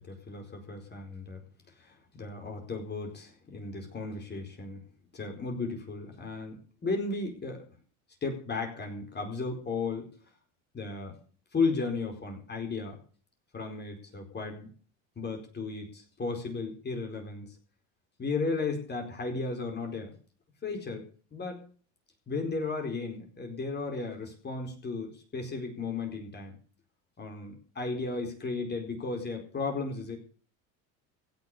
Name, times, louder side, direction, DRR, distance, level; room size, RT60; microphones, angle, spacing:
voice 1, 0.1-1.4 1.8-4.8 5.1-7.6 8.2-10.1 10.7-11.2 11.5-13.0 13.5-14.7 15.2-17.5 18.2-20.2 20.6-21.7 22.3-26.6 27.2-30.2, left 4 dB, 25° left, 3 dB, 4.7 m, -35 dB
16.5 x 6.6 x 9.8 m, 0.42 s
supercardioid pair, 105°, 38 cm